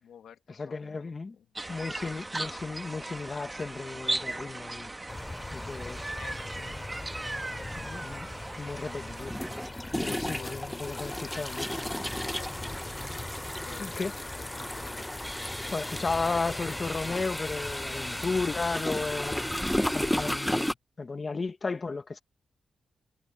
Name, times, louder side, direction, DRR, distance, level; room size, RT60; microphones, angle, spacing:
voice 1, 0.0-2.2 6.1-6.8 7.1-8.2 8.6-8.8 10.1-10.7 10.9-11.7 12.3-13.0 13.6-16.0 18.0-18.3, left 8 dB, 85° left, 2.5 m, -52 dB
voice 2, 0.6-1.4 1.7-4.9 5.5-6.1 7.8-8.3 8.6-9.4 10.0-11.7 13.8-14.1 15.7-19.5 19.9-22.2, left 4 dB, 40° left, 1.7 m, -34 dB
sound 1, 1.6-9.7, right 2 dB, 20° right, 1.8 m, -37 dB
sound 2, 5.1-20.4, left 2 dB, 25° left, 3.5 m, -42 dB
sound 3, 7.7-7.8 9.2-20.7, left 1 dB, 5° left, 1.0 m, -34 dB
cardioid pair, 70°, 0 cm